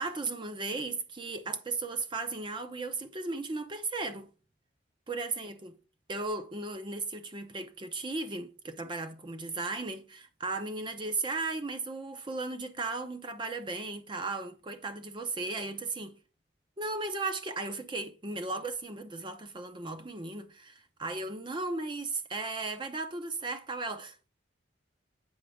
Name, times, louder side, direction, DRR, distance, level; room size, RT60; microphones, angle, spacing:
voice 1, 0.0-4.3 5.1-5.8 6.1-16.2 16.8-24.3, right 3 dB, 25° right, 0.7 m, -36 dB
7.9 x 6.0 x 3.5 m
head